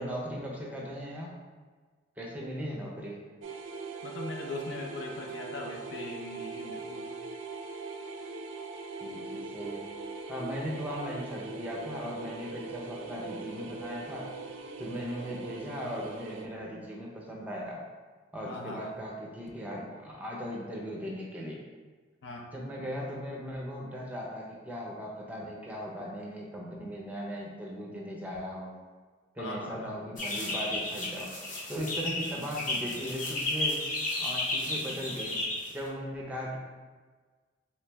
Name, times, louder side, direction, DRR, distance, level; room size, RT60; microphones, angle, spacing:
voice 1, 0.0-1.3 2.2-3.2 9.0-9.9 10.3-14.3 14.8-17.8 18.3-21.6 22.5-28.7 29.4-31.4 31.7-33.9 34.2-36.6, equal, 10° right, -3 dB, 0.5 m, -38 dB
sound 1, 3.4-16.5, right 4 dB, 85° right, 0.4 m, -41 dB
voice 2, 4.0-7.1 18.4-18.9 22.2-22.5 29.4-30.0, left 2 dB, 70° left, 1 dB, 0.5 m, -40 dB
sound 2, 30.2-35.9, left 2 dB, 45° left, 0.8 m, -33 dB
3.3 x 3.1 x 3.3 m, 1.4 s
head